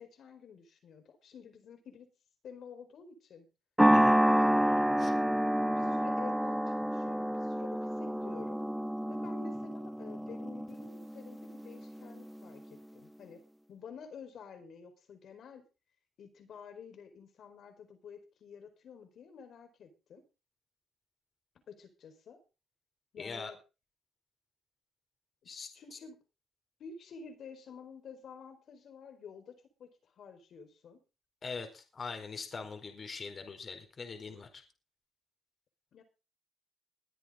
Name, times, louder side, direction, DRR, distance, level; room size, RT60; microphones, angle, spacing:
voice 1, 0.0-2.1 2.4-3.5 4.3-4.5 5.7-8.6 9.1-13.4 13.7-15.6 16.2-20.3 21.7-22.4 23.1-23.6 25.7-26.2 26.8-31.0 35.9-36.0, left 6 dB, 65° left, 7 dB, 4.5 m, -50 dB
sound 1, 3.8-12.3, equal, 5° right, 0.6 m, -29 dB
voice 2, 23.2-23.5 25.5-25.7 31.4-34.6, left 4 dB, 40° left, 5 dB, 4.4 m, -42 dB
22.0 x 8.5 x 3.9 m, 0.31 s
cardioid pair, 90°, 0 cm